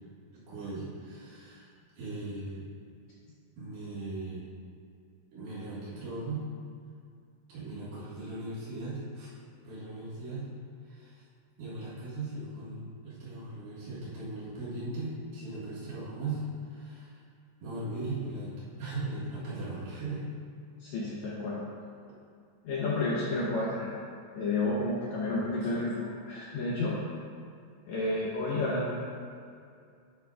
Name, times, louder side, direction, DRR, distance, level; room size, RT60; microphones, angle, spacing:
voice 1, 0.3-1.7 2.0-2.6 3.6-4.5 5.3-6.5 7.5-9.3 9.6-10.5 10.9-11.2 11.6-17.2 17.6-20.2, right 2 dB, 80° right, -10 dB, 3.6 m, -38 dB
voice 2, 20.8-21.6 22.6-23.9 24.4-27.0 27.9-28.9, left 2 dB, 70° left, -6 dB, 1.7 m, -31 dB
11.0 x 5.9 x 2.4 m, 2.3 s
omnidirectional pair, 4.1 m